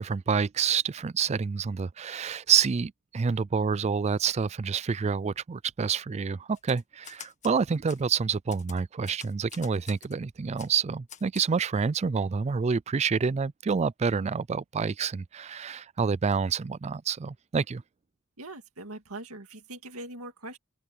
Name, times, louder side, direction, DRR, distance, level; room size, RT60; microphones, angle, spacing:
voice 1, 0.0-17.8, right 6 dB, 30° right, 0.3 m, -28 dB
Typewriter, 6.5-7.6 7.9-8.0 8.5-10.1 10.6-10.7 11.1-11.5, left 8 dB, 35° left, 1.8 m, -47 dB
voice 2, 18.4-20.6, right 2 dB, 75° right, 2.2 m, -41 dB
head